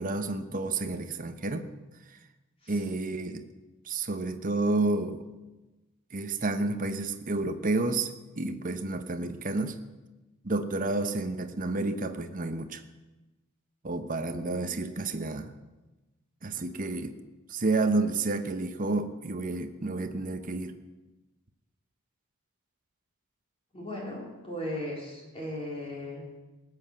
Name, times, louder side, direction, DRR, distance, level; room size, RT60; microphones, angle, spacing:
voice 1, 0.0-1.7 2.7-3.5 3.8-5.3 6.1-9.8 10.4-12.8 13.8-15.6 16.4-17.2 17.5-20.7, right 3 dB, 40° right, 8 dB, 0.9 m, -30 dB
voice 2, 14.3-14.7 23.7-26.2, left 1 dB, 30° left, -3 dB, 3.8 m, -37 dB
18.5 x 7.9 x 7.2 m, 1.1 s
head